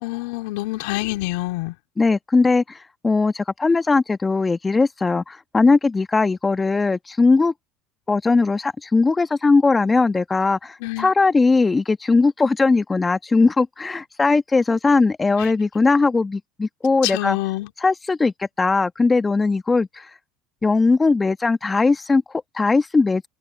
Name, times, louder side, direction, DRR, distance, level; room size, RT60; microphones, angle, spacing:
voice 1, 0.0-1.8 10.8-11.1 15.4-15.5 17.0-17.7, left 19 dB, 70° left, 4.0 m, -26 dB
voice 2, 2.0-7.5 8.1-17.4 17.8-20.1 20.6-23.3, left 3 dB, 20° left, 1.6 m, -19 dB
hypercardioid pair, 80°, 0 cm